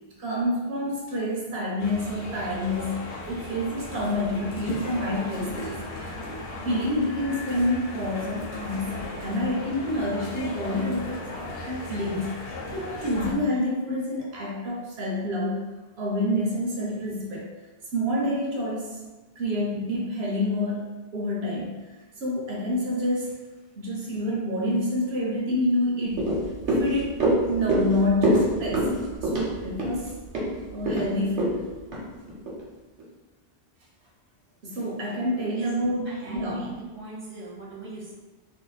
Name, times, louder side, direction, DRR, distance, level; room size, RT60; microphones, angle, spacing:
voice 1, 0.2-6.4 6.6-15.7 16.0-17.5 17.9-19.0 19.4-23.3 23.8-26.3 26.7-30.1 30.7-31.7 34.6-36.8, left 1 dB, 70° right, -3 dB, 1.0 m, -28 dB
sound 1, 1.8-13.3, left 2 dB, 80° left, 0.9 m, -36 dB
sound 2, 26.1-32.6 33.0-33.1, right 1 dB, 85° right, 1.2 m, -26 dB
voice 2, 36.0-38.1, right 2 dB, 10° right, -7 dB, 0.8 m, -39 dB
2.7 x 2.2 x 3.9 m, 1.2 s
omnidirectional pair, 1.1 m